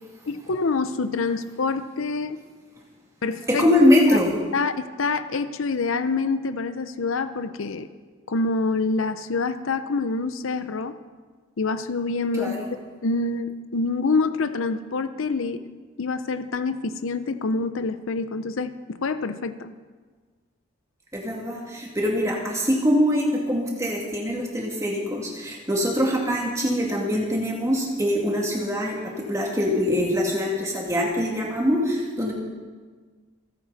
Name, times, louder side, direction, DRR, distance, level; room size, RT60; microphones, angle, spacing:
voice 1, 0.3-2.4 3.2-3.7 4.5-7.9 8.3-11.0 11.6-12.5 13.0-15.7 16.0-19.7, left 3 dB, 75° left, 11 dB, 0.6 m, -26 dB
voice 2, 3.5-4.3 12.4-12.7 21.1-32.3, left 1 dB, 15° right, -2 dB, 2.4 m, -23 dB
27.5 x 9.2 x 4.1 m, 1.5 s
head